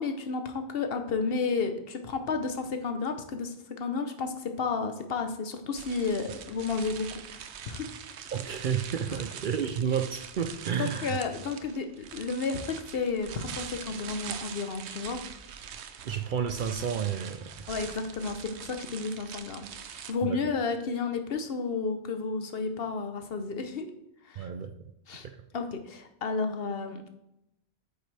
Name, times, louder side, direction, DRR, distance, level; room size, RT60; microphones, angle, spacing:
voice 1, 0.0-7.9 9.1-9.2 10.7-15.6 17.7-23.9 24.2-24.5 25.1-25.3 25.5-27.1, left 4 dB, 60° left, 7 dB, 1.0 m, -32 dB
sound 1, 5.7-20.1, right 8 dB, 80° right, 0.9 m, -43 dB
voice 2, 8.3-11.2 16.0-17.7 20.2-20.4 24.4-24.7, right 7 dB, 60° right, 8 dB, 0.6 m, -31 dB
8.8 x 7.0 x 3.3 m, 0.83 s
omnidirectional pair, 1.1 m